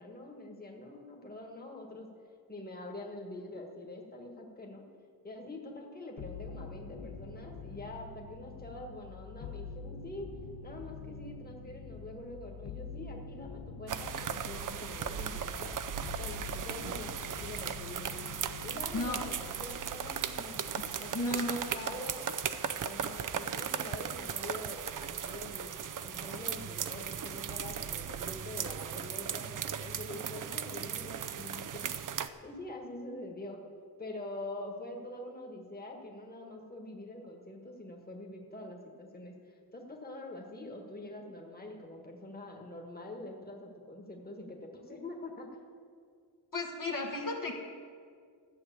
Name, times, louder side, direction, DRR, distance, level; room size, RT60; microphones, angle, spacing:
voice 1, 0.0-2.1 2.5-4.8 5.2-10.3 10.6-15.7 16.2-18.2 18.6-20.6 21.0-22.4 22.8-32.0 32.4-33.6 34.0-45.5, left 1 dB, 25° left, 1 dB, 1.6 m, -45 dB
sound 1, 6.2-23.6 23.9-24.7, left 4 dB, 75° left, 0.9 m, -46 dB
sound 2, 13.9-32.3, right 8 dB, 50° right, 0.5 m, -37 dB
sound 3, 13.9-28.8, right 4 dB, 80° right, 1.4 m, -51 dB
voice 2, 21.1-21.7 46.5-47.5, left 2 dB, 50° left, 0 dB, 1.3 m, -34 dB
12.5 x 6.5 x 8.6 m, 2.2 s
wide cardioid pair, 130°, 40 cm